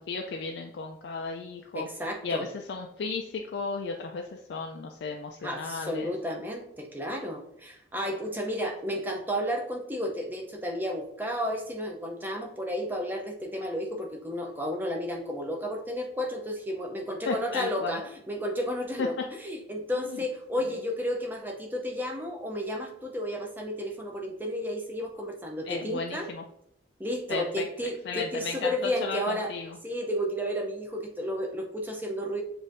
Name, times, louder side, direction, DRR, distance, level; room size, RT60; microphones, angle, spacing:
voice 1, 0.0-1.9 2.2-6.1 17.3-18.0 19.0-19.1 20.1-20.2 25.7-26.4 27.3-27.4 28.1-29.8, left 4 dB, 65° left, 2 dB, 0.3 m, -34 dB
voice 2, 1.7-2.5 5.4-19.1 19.4-26.3 27.0-29.5 29.8-32.4, equal, 10° right, 1 dB, 0.5 m, -32 dB
7.2 x 2.6 x 2.6 m, 0.78 s
head